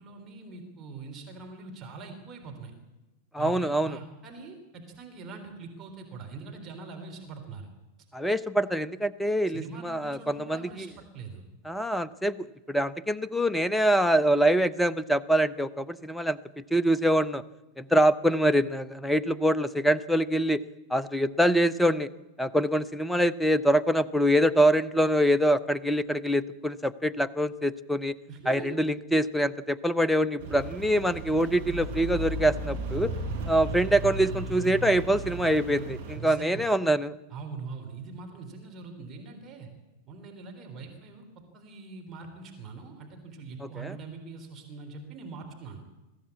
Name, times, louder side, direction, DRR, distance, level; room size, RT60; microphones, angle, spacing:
voice 1, 0.0-2.7 3.4-7.7 9.5-11.4 28.3-28.8 36.2-36.7 37.3-39.7 40.1-41.2 41.5-45.8, right 4 dB, 25° right, 2 dB, 3.9 m, -42 dB
voice 2, 3.3-4.0 8.1-10.9 11.7-16.4 16.7-17.4 17.8-20.6 20.9-22.1 22.4-28.1 28.5-33.1 33.5-37.1 43.6-44.0, equal, 5° left, 16 dB, 0.7 m, -25 dB
Rain, 30.4-36.2, right 3 dB, 55° right, 6.4 m, -35 dB
22.0 x 15.0 x 8.5 m, 1.0 s
figure-of-eight pair, 90°, 0 cm